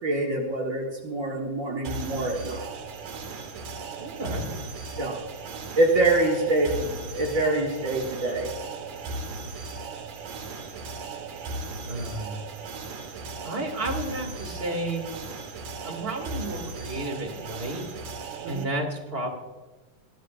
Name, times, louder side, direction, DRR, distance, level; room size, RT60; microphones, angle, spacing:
voice 1, 0.0-2.7 5.0-5.2 5.8-8.5 18.4-18.7, right 2 dB, 55° right, -2 dB, 0.9 m, -25 dB
sound 1, 1.8-18.6, right 3 dB, 70° right, 2.8 m, -37 dB
voice 2, 4.0-4.5 11.9-12.5 13.4-15.1 15.8-17.9 18.5-19.3, right 1 dB, 20° right, 2 dB, 1.9 m, -32 dB
21.5 x 12.5 x 2.5 m, 1.2 s
omnidirectional pair, 3.7 m